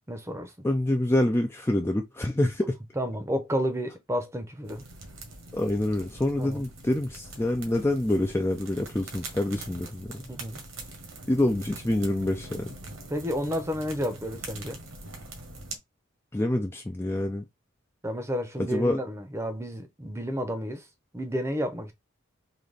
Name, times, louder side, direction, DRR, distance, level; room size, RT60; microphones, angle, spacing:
voice 1, 0.1-0.5 3.0-4.8 6.4-6.6 10.3-10.6 13.1-14.8 18.0-20.8 21.1-21.9, equal, 15° right, 0.7 m, -31 dB
voice 2, 0.6-2.8 5.5-10.3 11.3-12.8 16.3-17.5 18.6-19.0, left 1 dB, 10° left, 0.4 m, -26 dB
sound 1, 4.6-15.8, right 2 dB, 75° right, 1.3 m, -43 dB
3.9 x 2.9 x 3.3 m
head